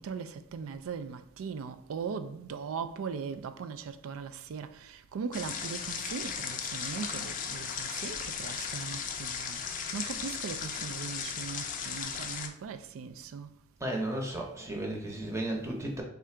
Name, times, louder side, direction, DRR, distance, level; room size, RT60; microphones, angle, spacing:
voice 1, 0.0-9.6 9.9-13.5, right 6 dB, 80° right, 0.3 m, -39 dB
sound 1, 5.3-12.5, left 6 dB, 40° left, 0.4 m, -36 dB
voice 2, 13.8-16.0, right 1 dB, 15° right, 0.7 m, -34 dB
3.7 x 2.4 x 4.3 m
head